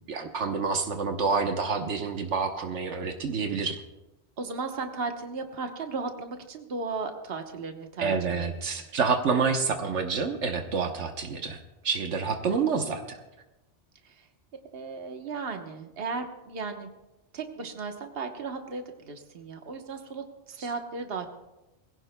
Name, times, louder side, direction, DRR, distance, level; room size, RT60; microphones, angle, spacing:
voice 1, 0.1-3.8 8.0-11.6 11.8-13.2, right 5 dB, 80° right, 5 dB, 1.3 m, -28 dB
voice 2, 4.4-8.1 8.8-8.9 14.0-14.3 14.7-16.9 17.3-21.3, right 4 dB, 55° right, 5 dB, 1.3 m, -35 dB
22.0 x 16.0 x 2.2 m, 1.0 s
omnidirectional pair, 1.2 m